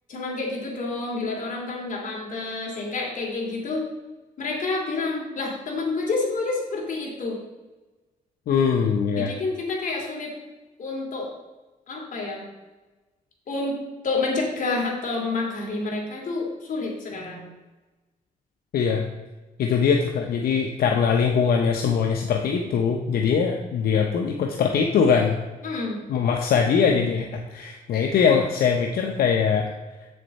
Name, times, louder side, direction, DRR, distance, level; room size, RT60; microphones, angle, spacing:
voice 1, 0.1-3.8 4.4-7.4 9.2-10.3 10.8-11.3 11.9-12.4 13.5-17.5 25.6-26.0, left 3 dB, 60° left, -2 dB, 2.7 m, -28 dB
voice 2, 8.5-9.3 18.7-19.1 19.6-25.4 26.1-29.7, left 6 dB, 85° left, 2 dB, 0.7 m, -22 dB
7.8 x 6.8 x 4.1 m, 1.2 s
cardioid pair, 110°, 15 cm